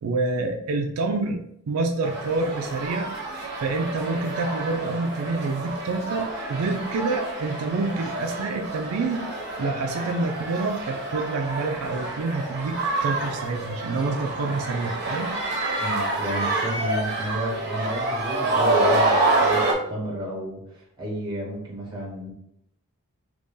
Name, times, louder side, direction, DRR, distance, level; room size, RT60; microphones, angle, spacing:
voice 1, 0.0-3.1 3.5-9.3 9.6-15.3, right 3 dB, 80° right, 4 dB, 0.4 m, -27 dB
sound 1, 2.0-19.7, right 2 dB, 45° right, 0.8 m, -27 dB
voice 2, 15.8-19.6 19.9-22.3, right 1 dB, 20° right, -2 dB, 1.1 m, -32 dB
2.9 x 2.7 x 3.6 m, 0.74 s
head